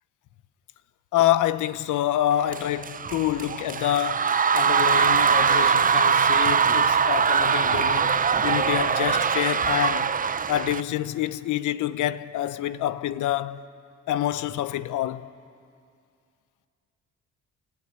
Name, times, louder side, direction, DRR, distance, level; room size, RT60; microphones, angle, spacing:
voice 1, 1.1-10.1 10.5-13.6 14.1-15.3, left 12 dB, 85° left, 0.9 m, -27 dB
sound 1, 2.5-10.8, right 6 dB, 30° right, 0.6 m, -22 dB
29.5 x 18.5 x 9.5 m
cardioid pair, 90°, 30 cm